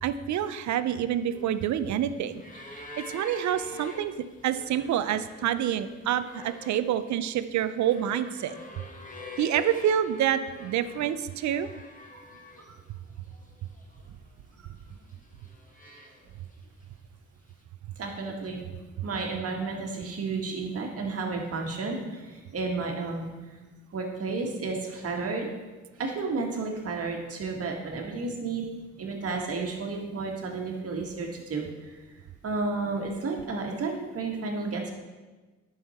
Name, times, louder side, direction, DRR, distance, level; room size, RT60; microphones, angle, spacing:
voice 1, 0.0-2.4 2.7-4.1 4.4-8.6 9.4-11.7, right 10 dB, 70° right, 12 dB, 0.6 m, -27 dB
sound 1, 1.2-12.9 13.2-14.1 14.8-16.5 17.6-17.7, left 1 dB, 25° left, 1.6 m, -46 dB
voice 2, 18.0-18.7 19.0-23.6 23.9-25.5 26.0-28.7 29.0-32.0 32.4-34.9, right 3 dB, 50° right, 1 dB, 1.8 m, -32 dB
10.0 x 6.5 x 4.3 m, 1.2 s
cardioid pair, 90°, 30 cm